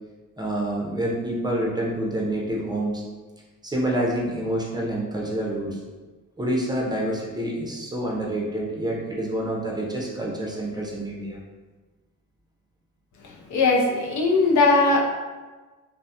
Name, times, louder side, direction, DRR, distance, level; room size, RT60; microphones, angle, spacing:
voice 1, 0.4-3.0 3.6-5.8 6.4-11.4, right 1 dB, 15° right, -4 dB, 0.5 m, -27 dB
voice 2, 13.2-15.0, left 3 dB, 70° left, 0 dB, 0.5 m, -20 dB
2.2 x 2.1 x 2.7 m, 1.3 s
cardioid pair, 90°, 30 cm